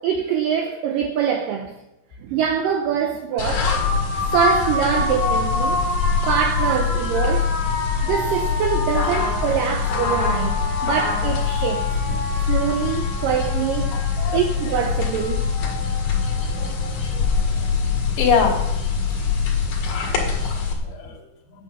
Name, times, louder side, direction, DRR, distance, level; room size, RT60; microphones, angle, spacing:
voice 1, 0.0-1.8 2.2-3.8 4.1-7.5 8.0-11.9 12.5-14.0 14.3-15.5, right 8 dB, 85° right, 1.9 m, -24 dB
sound 1, 3.4-20.7, left 5 dB, 55° left, 3.1 m, -23 dB
voice 2, 13.9-14.4 16.6-17.2 18.2-18.6 20.0-21.2, left 6 dB, 85° left, 4.4 m, -25 dB
9.0 x 8.7 x 7.3 m
omnidirectional pair, 4.9 m